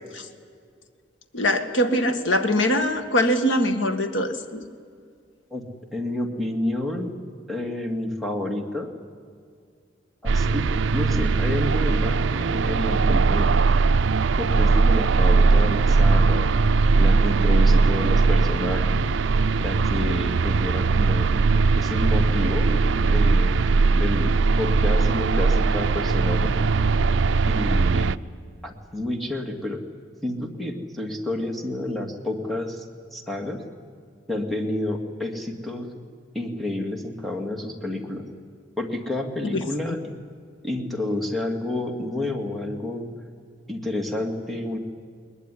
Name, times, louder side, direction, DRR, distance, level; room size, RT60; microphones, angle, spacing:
voice 1, 1.3-4.7 39.5-40.0, equal, 75° left, 8 dB, 1.7 m, -23 dB
voice 2, 5.9-7.1 7.5-8.9 10.2-13.6 14.4-16.5 16.9-19.2 19.6-21.3 21.8-23.6 23.9-26.6 27.4-28.1 28.6-29.8 30.2-32.9 33.1-33.6 34.3-35.9 36.3-38.3 38.8-40.0 40.6-43.1 43.7-44.8, left 1 dB, ahead, 2 dB, 2.1 m, -29 dB
sound 1, 10.3-28.2, right 4 dB, 75° right, 0.5 m, -20 dB
20.5 x 20.5 x 9.9 m, 2.2 s
head